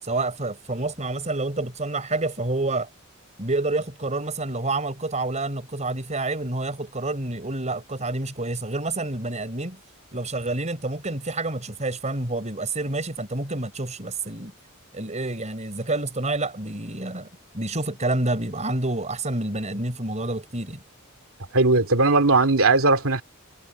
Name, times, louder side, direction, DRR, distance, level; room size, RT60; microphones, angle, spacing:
voice 1, 0.0-2.9 3.4-9.8 10.1-14.5 14.9-17.3 17.5-20.8, right 2 dB, 35° right, 4.7 m, -28 dB
voice 2, 21.5-23.2, right 3 dB, 70° right, 2.7 m, -18 dB
head